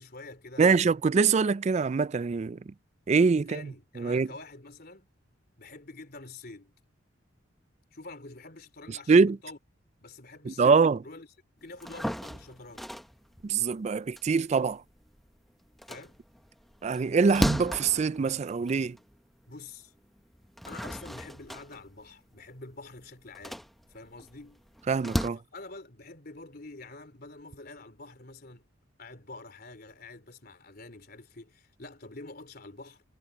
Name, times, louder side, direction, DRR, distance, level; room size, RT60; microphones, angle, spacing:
voice 1, 0.0-1.0 3.3-5.1 5.6-6.7 7.9-9.6 10.0-11.3 11.6-12.8 15.9-16.2 19.5-19.9 20.7-23.6 23.9-24.6 25.5-28.7 29.0-33.0, left 3 dB, 50° left, 3.5 m, -47 dB
voice 2, 0.6-2.7 3.1-4.3 8.9-9.4 10.5-11.0 13.4-14.8 16.8-19.0 24.9-25.4, right 5 dB, 35° right, 0.3 m, -24 dB
sound 1, 11.7-15.3 15.7-19.2 19.6-19.7 20.3-25.3, equal, ahead, 0.8 m, -36 dB
head